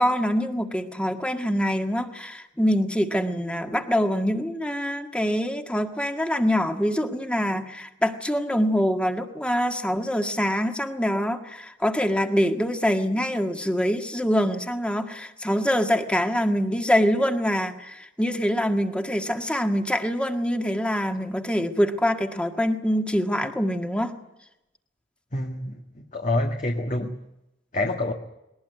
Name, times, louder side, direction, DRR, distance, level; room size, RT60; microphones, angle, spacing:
voice 1, 0.0-24.1, equal, 5° left, 5 dB, 1.7 m, -24 dB
voice 2, 25.3-25.8 26.1-27.2 27.7-28.1, left 2 dB, 45° left, 3 dB, 1.7 m, -26 dB
21.0 x 19.0 x 9.3 m, 0.90 s
head